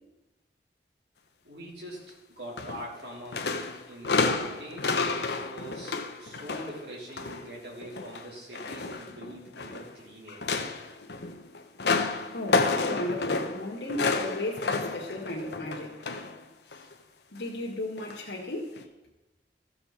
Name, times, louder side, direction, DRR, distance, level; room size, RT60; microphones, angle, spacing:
voice 1, 1.4-10.5, right 1 dB, 75° right, -4 dB, 3.7 m, -43 dB
sound 1, 2.6-3.0 3.3-7.5 7.8-9.9 10.3-16.4 16.7-16.9 18.0-18.2 18.8-18.9, left 3 dB, 75° left, 0.9 m, -30 dB
voice 2, 12.3-16.3 16.6-16.9 17.3-18.7, left 1 dB, 90° left, -3 dB, 1.9 m, -35 dB
14.0 x 6.9 x 4.1 m, 1.1 s
head